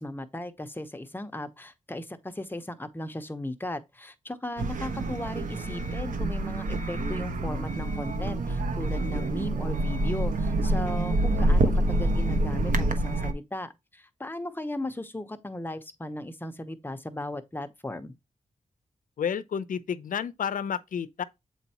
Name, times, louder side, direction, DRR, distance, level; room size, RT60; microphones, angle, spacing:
voice 1, 0.0-18.1, left 1 dB, 15° left, 0.9 m, -37 dB
sound 1, 4.6-13.3, right 1 dB, 80° right, 1.0 m, -27 dB
voice 2, 19.2-21.2, left 7 dB, 90° left, 0.6 m, -31 dB
8.0 x 4.5 x 2.9 m
wide cardioid pair, 95°, 14 cm